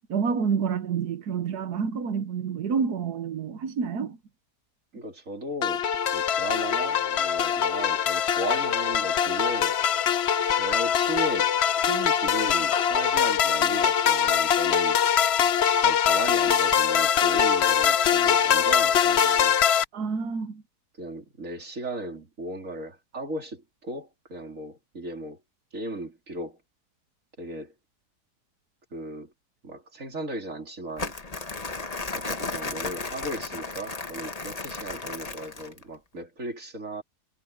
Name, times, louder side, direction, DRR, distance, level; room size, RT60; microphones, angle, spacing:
voice 1, 0.1-4.2 19.9-20.6, right 6 dB, 75° right, 1.6 m, -28 dB
voice 2, 4.9-5.8 6.1-9.8 10.5-15.0 15.8-19.6 21.0-25.4 25.7-26.6 27.4-27.7 28.9-29.3 29.6-31.1 32.1-37.0, right 1 dB, 55° right, 3.8 m, -36 dB
sound 1, 5.6-19.8, left 8 dB, 55° left, 0.8 m, -23 dB
Crumpling crinkling, 31.0-35.8, left 3 dB, 25° left, 1.3 m, -34 dB
omnidirectional pair, 1.7 m